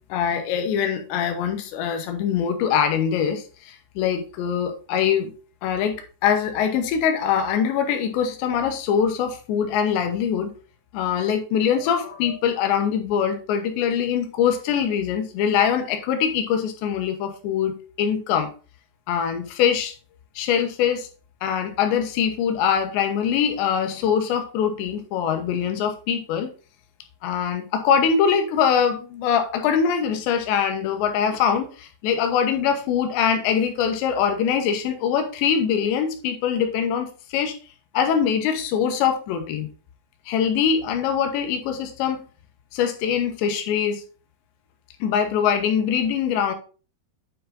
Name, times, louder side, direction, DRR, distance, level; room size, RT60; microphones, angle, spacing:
voice 1, 0.1-5.3 5.6-10.5 10.9-18.5 19.1-19.9 20.4-21.1 21.4-26.5 27.2-37.5 37.9-39.7 40.3-42.3 42.7-44.0 45.0-46.5, left 7 dB, 90° left, 6 dB, 3.3 m, -23 dB
9.0 x 4.8 x 3.7 m, 0.36 s
omnidirectional pair, 4.9 m